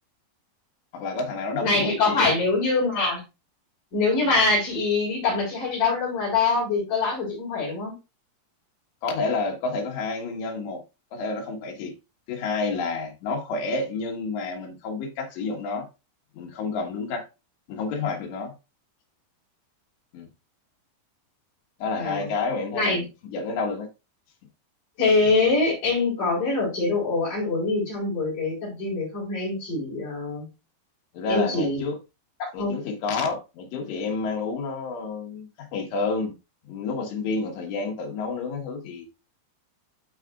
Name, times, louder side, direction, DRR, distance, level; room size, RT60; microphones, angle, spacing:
voice 1, 0.9-2.3 4.2-4.3 9.0-10.8 11.1-11.9 12.3-15.9 16.3-17.3 17.7-18.5 20.1-20.3 21.8-23.9 31.1-32.0 32.5-36.3 36.7-39.1, left 4 dB, 85° left, 3.8 m, -29 dB
voice 2, 1.6-3.2 3.9-7.9 22.0-22.3 22.7-23.0 25.0-30.5 31.3-31.8 32.4-32.8, left 3 dB, 50° left, 5.8 m, -24 dB
12.5 x 4.7 x 2.4 m
omnidirectional pair, 4.8 m